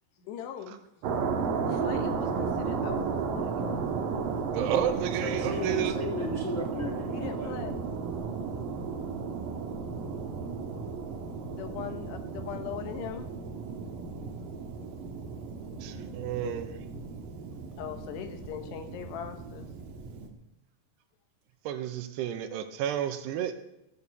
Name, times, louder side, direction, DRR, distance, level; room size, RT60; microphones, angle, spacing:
voice 1, 0.2-0.8 1.7-3.9 7.1-7.8 11.5-13.3 17.8-19.7, left 8 dB, 80° left, 6 dB, 3.3 m, -40 dB
sound 1, 1.0-20.3, right 5 dB, 65° right, 2.5 m, -34 dB
voice 2, 4.5-6.0 15.8-16.8 21.7-23.6, right 10 dB, 80° right, 8 dB, 2.9 m, -31 dB
voice 3, 5.2-7.5, left 2 dB, 55° left, 0 dB, 0.8 m, -35 dB
16.5 x 6.8 x 6.9 m, 0.87 s
omnidirectional pair, 4.9 m